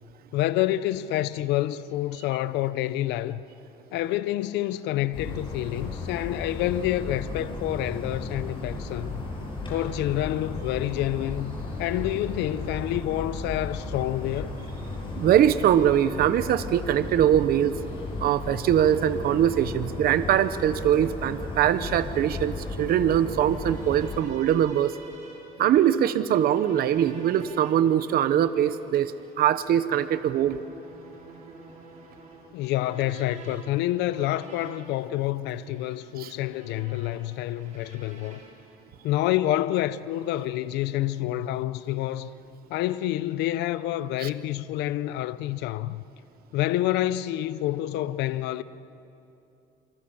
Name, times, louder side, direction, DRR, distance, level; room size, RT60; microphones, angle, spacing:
voice 1, 0.3-3.4 3.9-9.2 9.7-14.5 32.5-38.4 39.0-42.3 42.7-46.0 46.5-48.6, left 14 dB, 90° left, 0.7 m, -28 dB
sound 1, 5.1-24.2, left 2 dB, 30° left, 7.9 m, -35 dB
voice 2, 15.1-17.8 18.2-24.9 25.6-29.1 29.4-30.6 36.2-36.3 44.2-44.3, right 10 dB, 65° right, 0.9 m, -22 dB
sound 2, 23.2-38.8, right 3 dB, 45° right, 5.7 m, -49 dB
28.0 x 25.0 x 7.2 m
cardioid pair, 110°, 17 cm